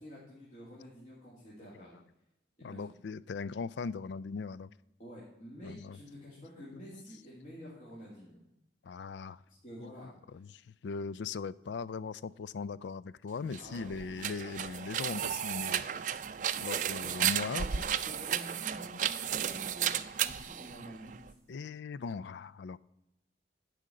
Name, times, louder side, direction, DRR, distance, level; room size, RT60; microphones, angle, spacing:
voice 1, 0.0-2.0 2.6-2.9 5.0-8.4 9.6-10.4 13.6-13.9 17.0-17.3 17.6-21.2, equal, 45° left, 2.3 m, -49 dB
voice 2, 2.6-4.7 5.6-6.0 6.7-7.0 7.6-7.8 8.8-9.4 9.8-15.9 16.6-17.8 21.5-22.8, left 5 dB, 80° left, 0.4 m, -39 dB
sound 1, 13.4-21.3, right 9 dB, 45° right, 0.4 m, -34 dB
10.5 x 5.0 x 7.6 m
head